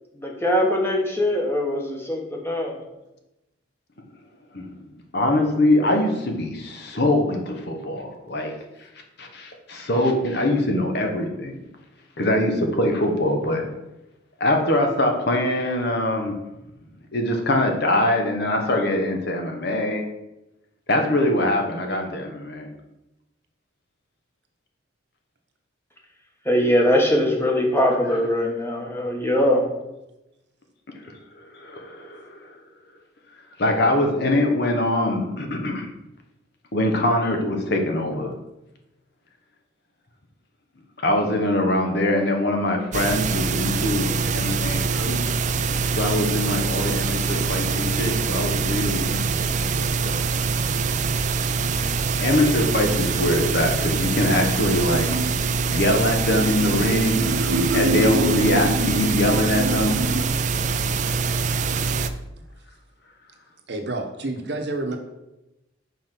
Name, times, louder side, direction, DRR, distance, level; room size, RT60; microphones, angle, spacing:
voice 1, 0.1-2.8 26.4-29.7, left 1 dB, 15° left, 0 dB, 1.2 m, -21 dB
voice 2, 5.1-8.5 9.2-11.6 12.2-13.6 14.4-16.4 17.1-20.0 20.9-22.7 31.5-32.4 33.6-35.9 36.7-38.3 41.0-45.3 45.9-50.2 51.7-51.8 52.2-55.1 55.7-57.3 57.7-60.0, left 1 dB, 60° left, 3 dB, 1.1 m, -23 dB
sound 1, 42.9-62.1, right 4 dB, 40° right, 0.4 m, -24 dB
voice 3, 54.4-55.4 62.3-62.5 63.7-65.0, right 2 dB, 60° right, 4 dB, 1.0 m, -31 dB
sound 2, 54.9-60.3, right 1 dB, 80° right, 0.7 m, -26 dB
5.7 x 4.6 x 5.9 m, 0.95 s
head